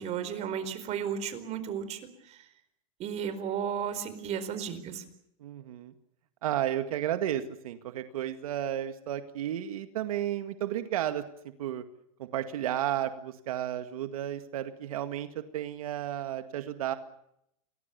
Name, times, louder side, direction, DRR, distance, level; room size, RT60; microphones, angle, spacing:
voice 1, 0.0-2.0 2.3-2.4 3.0-5.0, right 8 dB, 35° right, 12 dB, 4.5 m, -34 dB
voice 2, 5.4-5.9 6.4-11.2 11.6-11.8 12.2-16.9, right 11 dB, 80° right, 9 dB, 2.1 m, -33 dB
28.5 x 21.0 x 7.1 m, 0.77 s
hypercardioid pair, 125°, 18 cm